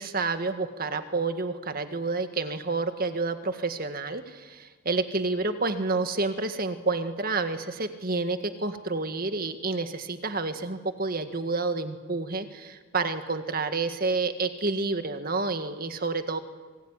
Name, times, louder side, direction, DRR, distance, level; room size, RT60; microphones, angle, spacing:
voice 1, 0.0-16.4, right 3 dB, 45° right, 8 dB, 1.9 m, -29 dB
26.5 x 21.5 x 9.9 m, 1.4 s
head